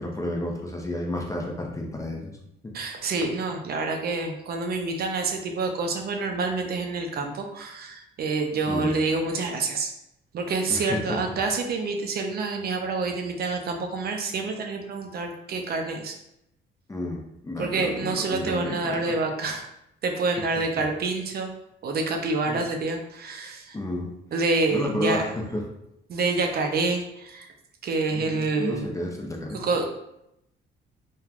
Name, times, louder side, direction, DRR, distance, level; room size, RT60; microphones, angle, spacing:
voice 1, 0.0-2.3 2.6-2.7 8.6-9.0 10.7-11.2 16.9-19.2 20.8-20.9 22.4-22.7 23.7-24.1 24.7-25.7 28.1-29.6, left 1 dB, 15° left, 0 dB, 0.5 m, -31 dB
voice 2, 2.7-9.9 10.3-16.2 17.6-19.7 20.0-21.5 21.8-23.8 24.3-25.3 26.1-27.5 27.8-28.9 29.5-29.9, right 3 dB, 50° right, 4 dB, 0.4 m, -27 dB
3.1 x 2.2 x 2.4 m, 0.81 s
cardioid pair, 90°, 20 cm